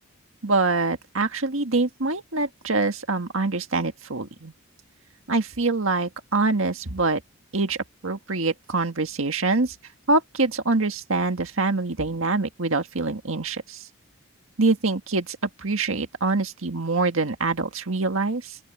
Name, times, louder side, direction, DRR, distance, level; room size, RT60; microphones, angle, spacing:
voice 1, 0.4-4.5 5.3-7.2 7.5-9.8 10.1-13.8 14.6-18.6, right 3 dB, 70° right, 1.7 m, -25 dB
open air
head